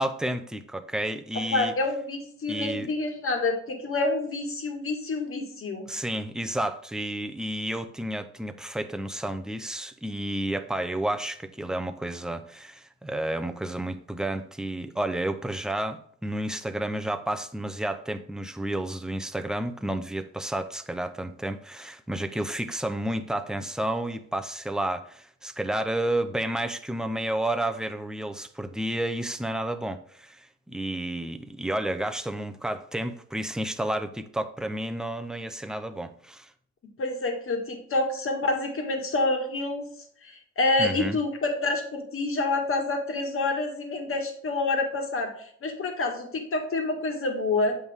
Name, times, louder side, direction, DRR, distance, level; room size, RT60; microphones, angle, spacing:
voice 1, 0.0-1.7 2.5-2.9 5.9-36.5 40.8-41.2, right 1 dB, ahead, 0.6 m, -31 dB
voice 2, 1.3-5.9 37.0-39.9 40.2-47.8, left 2 dB, 45° left, 1.8 m, -28 dB
8.0 x 5.3 x 3.5 m
cardioid pair, 90°, 30 cm